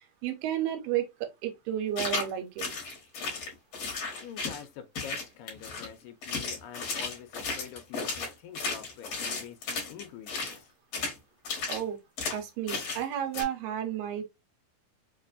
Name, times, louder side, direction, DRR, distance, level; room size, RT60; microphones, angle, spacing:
voice 1, 0.2-2.7 11.7-12.0 12.3-14.2, right 11 dB, 85° right, 2.5 m, -32 dB
sound 1, 2.0-2.3 2.6-4.6 5.0-5.9 6.2-10.6 10.9-11.2 11.4-11.8 12.2-12.4 12.7-13.0 13.3-13.4, left 4 dB, 55° left, 2.1 m, -34 dB
voice 2, 4.2-10.7, left 9 dB, 80° left, 2.1 m, -46 dB
5.3 x 2.5 x 2.5 m
omnidirectional pair, 4.0 m